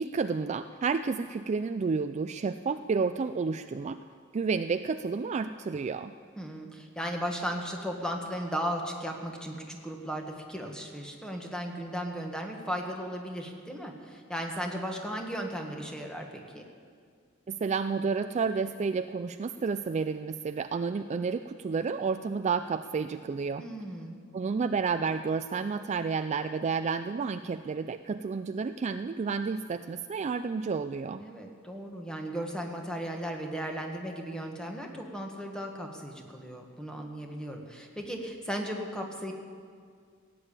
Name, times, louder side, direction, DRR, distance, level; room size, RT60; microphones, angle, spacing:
voice 1, 0.0-4.0 4.3-6.1 17.5-23.7 24.3-31.2, right 5 dB, 35° right, 10 dB, 0.3 m, -30 dB
voice 2, 6.4-16.6 23.6-24.2 31.2-39.3, equal, 5° left, 2 dB, 1.5 m, -36 dB
16.0 x 8.5 x 8.8 m, 2.1 s
head